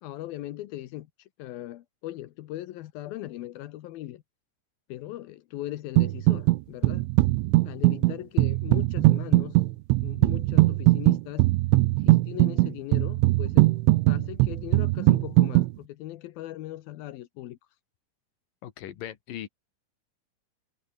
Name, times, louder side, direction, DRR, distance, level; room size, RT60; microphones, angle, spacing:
voice 1, 0.0-4.2 4.9-7.1 7.6-9.6 10.0-11.5 12.0-13.7 14.1-17.6, left 15 dB, 75° left, 2.3 m, -39 dB
sound 1, 6.0-6.6 6.8-15.7, right 20 dB, 85° right, 3.3 m, -21 dB
voice 2, 18.6-19.5, left 11 dB, 60° left, 2.9 m, -39 dB
omnidirectional pair, 5.5 m